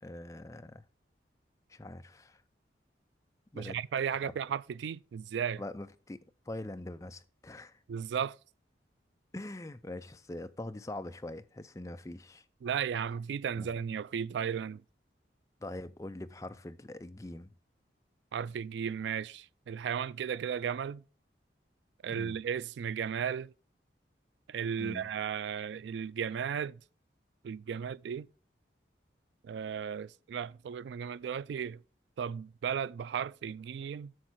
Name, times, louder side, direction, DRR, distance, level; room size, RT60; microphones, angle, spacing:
voice 1, 0.0-0.8 1.7-2.4 3.5-3.8 4.1-4.3 5.6-6.2 6.5-7.8 9.3-12.4 13.6-13.8 15.6-17.5 22.1-22.4 24.8-25.1, left 1 dB, 15° left, 0.4 m, -43 dB
voice 2, 3.5-5.6 7.9-8.4 12.6-14.8 18.3-21.0 22.0-23.5 24.5-26.8 27.4-28.3 29.4-31.8 32.2-34.1, right 7 dB, 75° right, 0.3 m, -35 dB
7.8 x 6.5 x 4.5 m
head